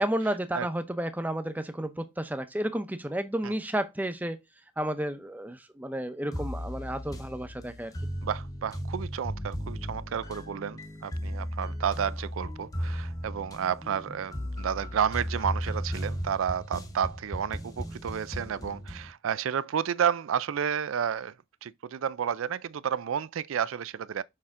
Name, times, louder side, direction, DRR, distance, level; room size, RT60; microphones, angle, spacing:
voice 1, 0.0-4.4 4.8-7.9, right 1 dB, 10° right, 0.7 m, -32 dB
sound 1, 6.3-19.1, equal, 20° left, 0.9 m, -36 dB
voice 2, 8.2-21.3 21.6-24.2, right 8 dB, 85° right, 0.4 m, -31 dB
6.6 x 5.6 x 3.7 m
head